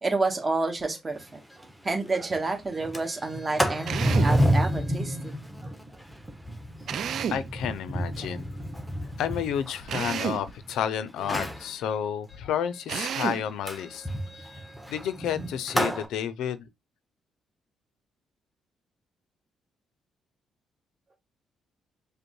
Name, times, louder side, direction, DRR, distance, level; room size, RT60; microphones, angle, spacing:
voice 1, 0.0-5.3 5.6-5.7, right 3 dB, 25° right, 1.3 m, -30 dB
Sliding door, 1.2-1.3 1.6-1.7 2.1-2.4 2.7-10.7 11.2-11.7 13.7-16.0, equal, ahead, 0.9 m, -29 dB
Drill, 3.9-4.4 6.9-7.5 9.9-10.5 12.9-13.5, right 8 dB, 65° right, 0.3 m, -31 dB
voice 2, 7.3-8.5 9.2-14.1 14.3-14.5 14.9-16.7, left 9 dB, 85° left, 0.4 m, -31 dB
5.1 x 2.1 x 3.0 m
cardioid pair, 90°, 0 cm